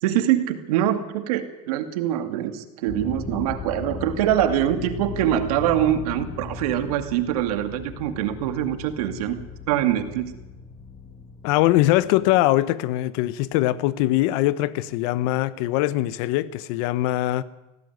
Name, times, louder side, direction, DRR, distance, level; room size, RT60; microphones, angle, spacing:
voice 1, 0.0-9.4 9.7-10.3, right 11 dB, 90° right, 2.4 m, -24 dB
sound 1, 2.9-12.4, left 6 dB, 25° left, 2.3 m, -37 dB
voice 2, 11.4-17.4, left 15 dB, 70° left, 1.1 m, -22 dB
18.5 x 17.0 x 9.4 m
supercardioid pair, 135°, 19 cm